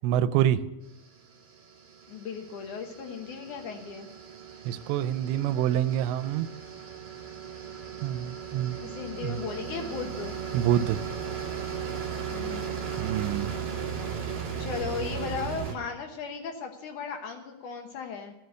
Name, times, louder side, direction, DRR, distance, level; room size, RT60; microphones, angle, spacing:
voice 1, 0.0-0.6 4.7-6.5 8.0-8.8 9.2-9.4 10.5-11.0 13.0-13.5, right 11 dB, 85° right, 13 dB, 2.7 m, -26 dB
sound 1, 1.1-15.7, right 7 dB, 65° right, 1.1 m, -37 dB
voice 2, 2.1-4.1 8.7-10.3 12.3-12.9 13.7-13.8 14.6-18.3, left 6 dB, 80° left, 4 dB, 1.8 m, -36 dB
16.5 x 6.5 x 8.1 m, 1.0 s
omnidirectional pair, 5.2 m